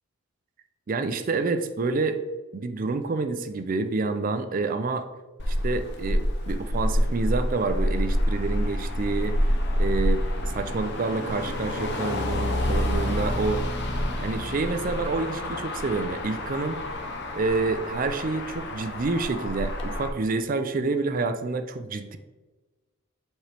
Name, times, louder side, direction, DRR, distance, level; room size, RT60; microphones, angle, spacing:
voice 1, 0.9-2.2 2.5-5.1 5.5-9.4 9.8-10.2 10.5-13.6 14.2-16.8 17.3-22.2, right 3 dB, 40° right, 9 dB, 0.4 m, -28 dB
Motor vehicle (road), 5.4-20.1, left 1 dB, 50° left, 0.8 m, -28 dB
7.2 x 4.4 x 3.4 m, 1.2 s
head